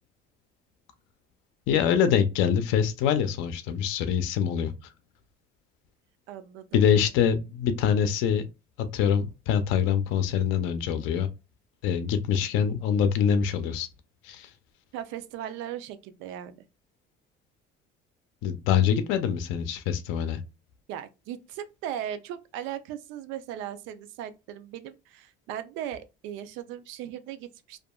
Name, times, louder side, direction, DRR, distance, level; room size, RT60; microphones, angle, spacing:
voice 1, 1.7-4.7 6.7-8.4 8.9-11.3 11.8-13.9 14.2-14.5 18.4-20.4, left 8 dB, 90° left, 0.5 m, -24 dB
voice 2, 6.3-6.7 14.9-16.6 20.9-27.8, right 10 dB, 85° right, 0.4 m, -38 dB
2.7 x 2.4 x 2.2 m
cardioid pair, 135°, 20 cm